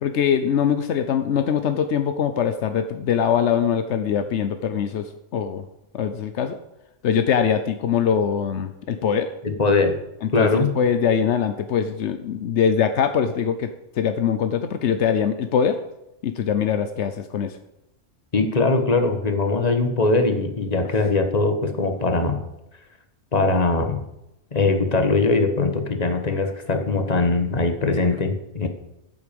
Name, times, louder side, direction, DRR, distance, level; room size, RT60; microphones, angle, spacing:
voice 1, 0.0-5.6 5.9-6.6 7.0-9.3 10.2-13.7 14.0-15.8 16.2-17.6, left 7 dB, 85° left, 9 dB, 1.0 m, -22 dB
voice 2, 9.4-10.0 10.3-10.7 18.3-22.4 23.3-24.0 24.5-28.7, left 3 dB, 35° left, 6 dB, 1.5 m, -21 dB
14.0 x 8.0 x 5.3 m, 0.90 s
omnidirectional pair, 1.2 m